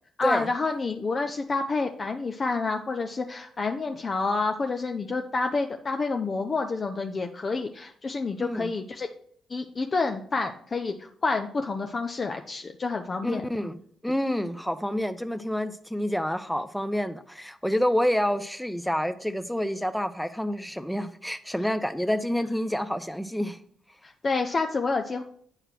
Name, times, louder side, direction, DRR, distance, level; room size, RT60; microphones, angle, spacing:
voice 1, 0.2-9.1 9.5-13.4 24.0-25.2, left 3 dB, 40° left, 0.6 m, -28 dB
voice 2, 8.4-8.7 13.2-13.8 14.0-23.6, equal, 5° left, 0.7 m, -28 dB
8.7 x 4.9 x 4.6 m
hypercardioid pair, 40°, 0 cm